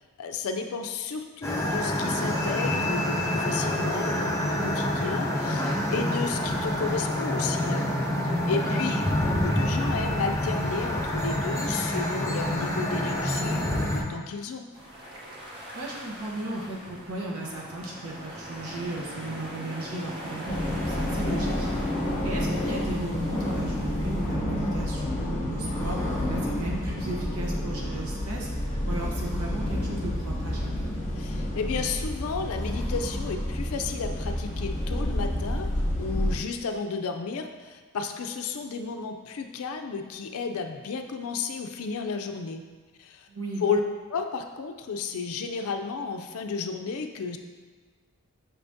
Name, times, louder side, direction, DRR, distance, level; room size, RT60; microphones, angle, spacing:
voice 1, 0.2-7.9 8.5-14.7 31.2-42.6 43.0-43.3 43.6-43.8 44.1-47.4, left 5 dB, 65° left, 6 dB, 0.4 m, -33 dB
sound 1, 1.4-14.0, left 1 dB, 15° left, 0.5 m, -27 dB
voice 2, 8.5-8.8 15.7-21.8 22.2-26.0 26.3-30.9 43.3-43.7, right 2 dB, 80° right, -2 dB, 0.9 m, -35 dB
sound 2, 14.7-24.3, equal, 20° right, 0.7 m, -41 dB
sound 3, 20.5-36.3, left 1 dB, 30° left, 0.9 m, -29 dB
5.9 x 2.6 x 3.5 m, 1.4 s
head